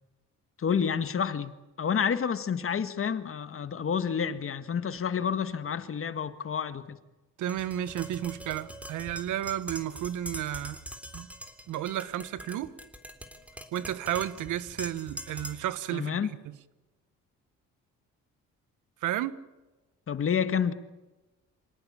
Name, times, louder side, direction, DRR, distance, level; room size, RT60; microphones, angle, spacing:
voice 1, 0.6-1.5 1.8-7.0 15.9-16.3 20.1-20.7, left 7 dB, 45° left, 11 dB, 1.8 m, -29 dB
voice 2, 7.4-10.8 11.1-11.3 11.7-12.7 13.7-16.2 16.5-16.6 19.0-19.4, right 12 dB, 85° right, 15 dB, 1.3 m, -32 dB
Tap, 7.5-15.8, equal, 5° right, 3.5 m, -43 dB
26.5 x 18.5 x 8.7 m, 1.1 s
cardioid pair, 90°, 30 cm